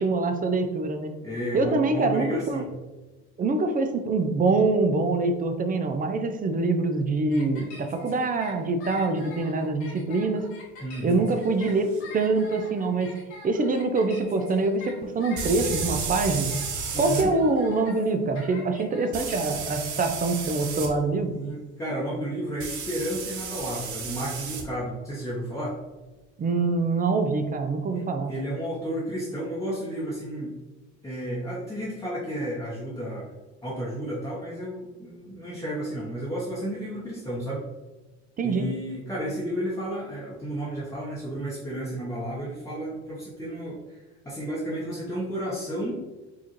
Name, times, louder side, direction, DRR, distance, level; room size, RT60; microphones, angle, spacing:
voice 1, 0.0-1.1 1.5-2.6 3.4-10.5 11.0-13.1 13.4-16.6 17.0-21.3 26.4-28.3 38.4-38.7, right 3 dB, 25° right, 7 dB, 0.5 m, -25 dB
voice 2, 1.2-2.7 10.8-11.2 16.9-17.3 21.3-25.8 27.9-30.5 31.0-33.3 33.6-37.6 38.4-46.0, right 1 dB, 10° left, -7 dB, 0.9 m, -32 dB
sound 1, 7.3-20.1, left 2 dB, 85° left, 1.4 m, -44 dB
sound 2, 11.9-12.0 15.4-17.3 19.1-20.9 22.6-24.6, right 5 dB, 60° right, 0.8 m, -32 dB
4.7 x 2.5 x 3.0 m, 1.1 s
supercardioid pair, 85°, 33 cm